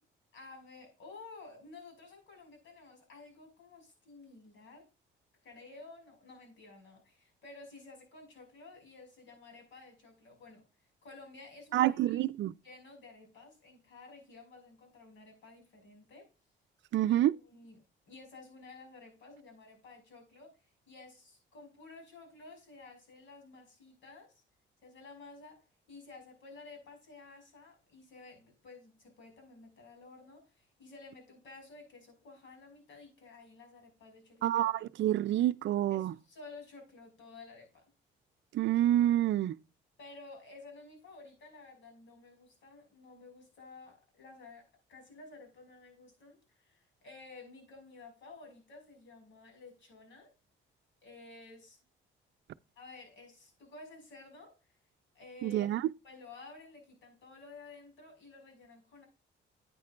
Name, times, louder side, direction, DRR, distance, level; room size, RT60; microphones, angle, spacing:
voice 1, 0.3-4.9 5.4-10.6 11.0-12.2 12.5-16.3 17.0-24.4 24.8-34.7 35.9-37.8 40.0-50.3 51.0-51.8 52.8-54.6 55.1-55.7 56.0-59.0, left 3 dB, 75° left, 5.8 m, -53 dB
voice 2, 11.7-12.5 16.9-17.3 34.4-36.1 38.5-39.6 55.4-55.8, right 13 dB, 70° right, 0.5 m, -27 dB
10.5 x 9.1 x 2.5 m
cardioid pair, 90°, 20 cm